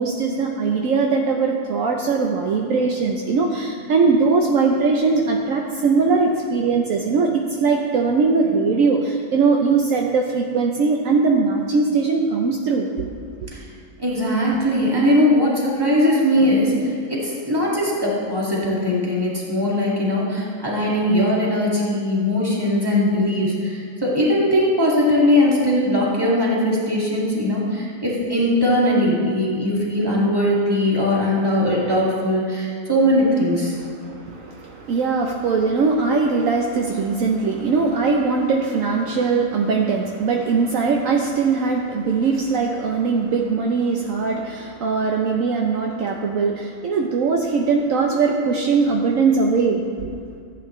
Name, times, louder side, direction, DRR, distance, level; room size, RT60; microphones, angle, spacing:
voice 1, 0.0-13.1 33.7-50.1, right 4 dB, 70° right, 1 dB, 1.0 m, -20 dB
voice 2, 14.0-33.8, left 1 dB, 15° right, -6 dB, 2.1 m, -20 dB
14.5 x 8.5 x 3.1 m, 2.3 s
omnidirectional pair, 1.5 m